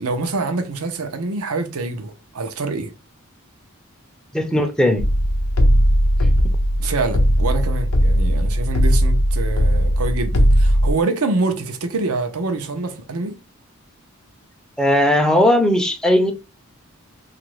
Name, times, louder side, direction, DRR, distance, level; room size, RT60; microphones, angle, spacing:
voice 1, 0.0-2.9 6.8-13.4, right 3 dB, 85° right, 0.7 m, -25 dB
voice 2, 4.3-5.1 14.8-16.3, left 1 dB, 5° left, 0.5 m, -17 dB
sound 1, 5.0-10.9, equal, 75° left, 0.6 m, -17 dB
2.9 x 2.5 x 3.1 m
head